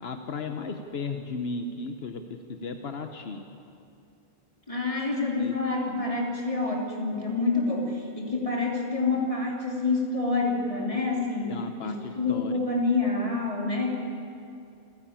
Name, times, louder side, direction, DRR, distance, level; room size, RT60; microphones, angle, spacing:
voice 1, 0.0-3.4 5.4-5.6 11.5-12.6, left 3 dB, 80° left, 6 dB, 1.2 m, -35 dB
voice 2, 4.7-14.0, left 3 dB, 35° left, -1 dB, 3.2 m, -27 dB
27.5 x 11.0 x 8.8 m, 2.6 s
omnidirectional pair, 1.0 m